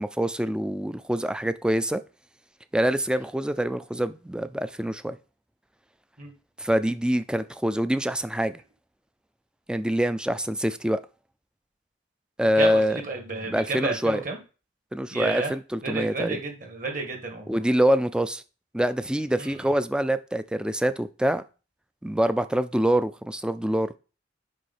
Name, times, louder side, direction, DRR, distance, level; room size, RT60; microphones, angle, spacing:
voice 1, 0.0-2.0 2.7-5.2 6.6-8.6 9.7-11.0 12.4-13.0 13.4-14.2 14.9-16.4 17.5-18.4 18.7-21.4 22.0-24.0, equal, 5° right, 0.4 m, -25 dB
voice 2, 12.6-14.4 15.1-15.5 15.8-17.6 19.4-19.7, right 3 dB, 45° right, 2.0 m, -31 dB
7.7 x 5.6 x 4.3 m
head